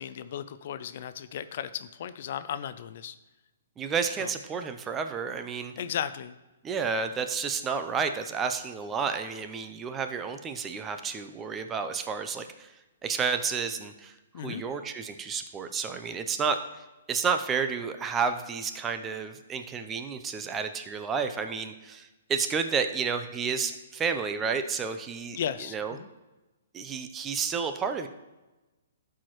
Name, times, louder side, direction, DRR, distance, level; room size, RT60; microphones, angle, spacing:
voice 1, 0.0-3.2 4.2-4.3 5.8-6.4 14.3-14.6 25.4-26.1, left 9 dB, 55° left, 13 dB, 0.4 m, -35 dB
voice 2, 3.8-5.7 6.6-12.7 13.0-25.4 25.7-26.0 26.7-28.1, right 5 dB, 20° right, 8 dB, 0.6 m, -31 dB
12.5 x 4.8 x 3.1 m, 1.1 s
hypercardioid pair, 130°, 0 cm